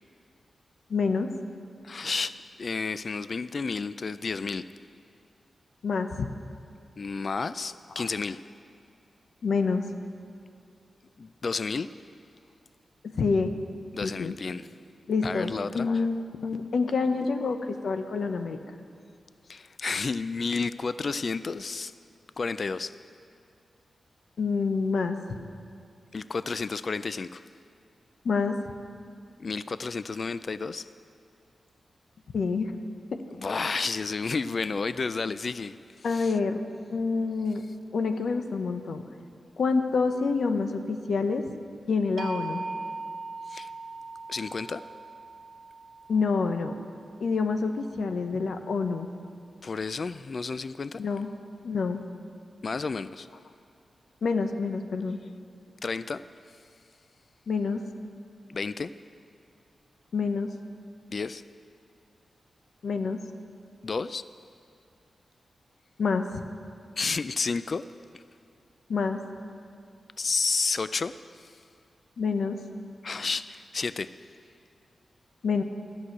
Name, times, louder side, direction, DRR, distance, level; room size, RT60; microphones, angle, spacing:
voice 1, 0.9-1.3 5.8-6.3 8.0-8.1 9.4-9.9 13.2-13.6 14.0-14.3 15.1-18.6 24.4-25.2 28.2-28.5 32.3-32.7 36.0-36.6 36.9-37.6 37.9-39.0 39.6-41.4 41.9-42.6 46.1-46.8 47.2-49.1 51.0-51.3 51.6-52.0 54.2-55.2 57.5-57.8 60.1-60.5 62.8-63.2 66.0-66.4 68.9-69.2 72.2-72.6 75.4-75.6, left 4 dB, 75° left, 7 dB, 0.8 m, -27 dB
voice 2, 1.8-4.6 7.0-8.4 11.2-11.9 13.9-14.7 15.2-15.9 19.5-21.9 22.4-22.9 26.1-27.4 29.4-30.8 33.3-36.3 43.5-43.7 44.3-44.8 49.6-51.0 52.6-53.3 55.8-56.2 58.5-58.9 61.1-61.4 63.8-64.2 67.0-67.8 70.2-71.1 71.4-71.5 73.0-74.1, left 4 dB, 50° left, 14 dB, 0.3 m, -31 dB
sound 1, 42.2-48.2, right 3 dB, 75° right, 1.0 m, -40 dB
13.0 x 6.3 x 9.7 m, 2.3 s
cardioid pair, 75°, 0 cm